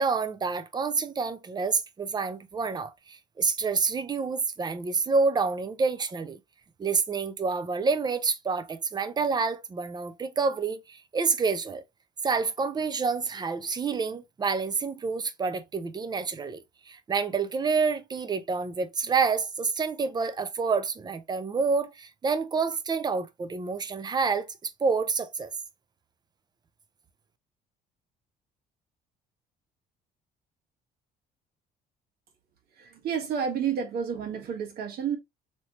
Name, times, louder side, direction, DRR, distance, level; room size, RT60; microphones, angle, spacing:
voice 1, 0.0-6.4 6.8-11.8 12.2-25.5, right 4 dB, 25° right, 0.5 m, -28 dB
voice 2, 32.8-35.2, right 7 dB, 65° right, 1.2 m, -30 dB
3.2 x 2.8 x 2.8 m
cardioid pair, 110°, 17 cm